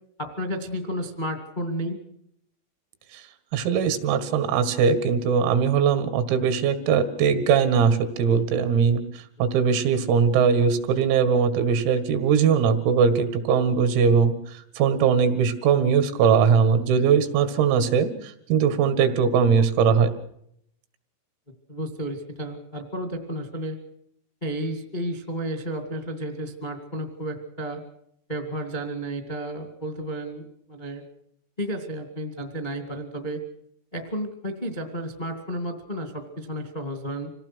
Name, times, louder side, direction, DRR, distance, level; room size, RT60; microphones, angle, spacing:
voice 1, 0.2-2.0 21.7-23.8 24.4-27.8 28.3-31.0 31.6-33.4 33.9-37.3, right 1 dB, 45° left, 5 dB, 0.5 m, -32 dB
voice 2, 3.5-9.0 9.4-20.1, right 6 dB, 90° right, 11 dB, 4.5 m, -21 dB
26.5 x 18.0 x 6.2 m, 0.70 s
omnidirectional pair, 5.9 m